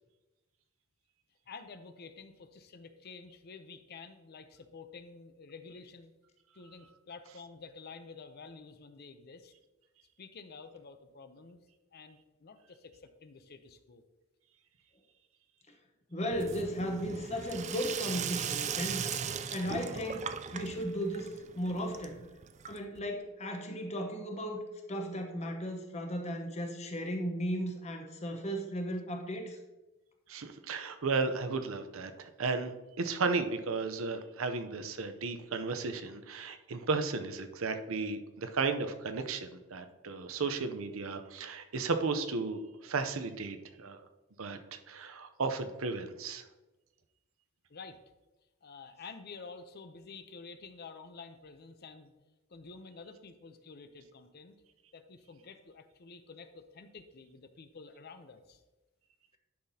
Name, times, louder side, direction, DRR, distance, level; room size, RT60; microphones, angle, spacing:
voice 1, 1.5-6.1 6.5-9.5 10.2-11.6 11.9-14.0 47.7-48.0 48.6-52.1 52.5-54.5 54.9-58.6, left 4 dB, 50° left, 9 dB, 0.6 m, -50 dB
voice 2, 16.1-19.0 19.5-22.2 22.7-24.6 24.9-29.6, equal, 30° left, 3 dB, 1.0 m, -35 dB
Sink (filling or washing), 16.3-23.1, right 7 dB, 35° right, 0.4 m, -38 dB
voice 3, 30.3-32.7 33.0-44.1 44.4-46.5, right 4 dB, 80° right, 8 dB, 0.7 m, -34 dB
10.5 x 5.9 x 2.8 m, 1.1 s
head